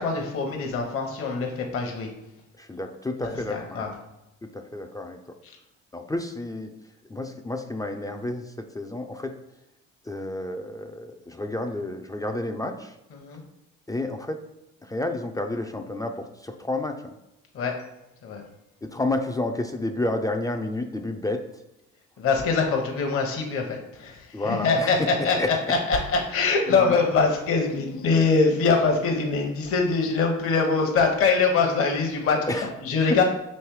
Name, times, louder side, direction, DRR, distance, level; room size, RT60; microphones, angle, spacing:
voice 1, 0.0-2.1 3.2-3.9 13.2-13.4 17.5-17.8 18.2-18.4 22.2-33.2, left 4 dB, 50° left, 2 dB, 0.8 m, -23 dB
voice 2, 2.6-3.9 4.5-5.2 5.9-6.7 7.1-9.4 10.0-13.0 13.9-14.4 14.8-17.2 18.8-21.4 24.3-25.5 26.7-27.0 32.5-32.7, left 2 dB, 10° left, 5 dB, 0.4 m, -30 dB
3.2 x 3.1 x 4.6 m, 0.92 s
supercardioid pair, 70°, 30 cm